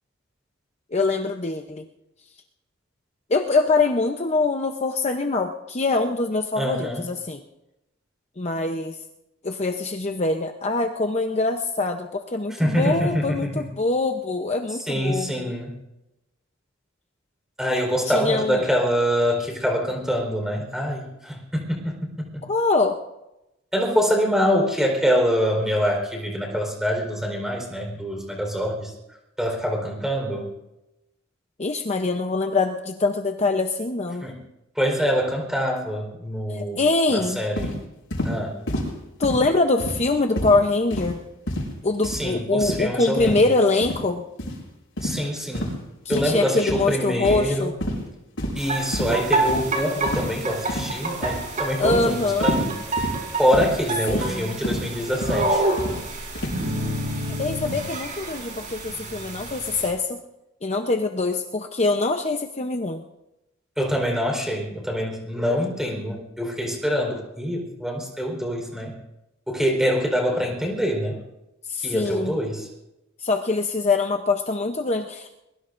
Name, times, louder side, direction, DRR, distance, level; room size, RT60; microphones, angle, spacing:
voice 1, 0.9-1.8 3.3-7.4 8.4-9.0 9.4-15.5 18.1-18.7 22.4-23.0 31.6-34.3 36.5-37.4 39.2-41.2 41.8-44.2 46.0-47.7 51.8-52.5 54.1-54.6 57.2-60.2 60.6-63.0 71.7-72.4 73.2-75.4, left 3 dB, 35° left, 4 dB, 0.8 m, -24 dB
voice 2, 6.6-7.0 12.5-13.6 14.8-15.8 17.6-22.4 23.7-28.9 29.4-30.5 34.2-34.4 34.8-36.8 37.1-37.7 38.2-38.6 42.0-43.4 45.0-45.8 46.1-47.7 48.5-52.7 53.4-55.6 63.8-69.0 69.5-71.2 71.8-72.7, equal, ahead, 1 dB, 4.2 m, -25 dB
sound 1, 37.6-37.8 38.1-38.3 38.7-38.9 39.2-39.5 39.8-40.1 40.4-40.6 40.9-41.1 41.5-41.7 42.0-42.3 42.6-42.8 43.2-43.4 43.8-44.0 44.4-44.6 45.0-45.2 45.5-45.7 46.1-46.3 46.7-46.9 47.2-47.5 47.8-48.0 48.4-48.6 48.9-49.1 49.5-49.6 50.1-50.3 50.7-51.0 51.2-51.5 51.8-52.0 52.4-52.7 53.0-53.2 53.5-53.7 54.1-54.3 54.6-54.8 55.2-55.4 55.8-56.0 56.3-56.6, equal, 80° left, 6.3 m, -28 dB
sound 2, 48.6-59.9, right 2 dB, 40° right, 4.8 m, -28 dB
23.0 x 22.0 x 2.6 m, 0.93 s
head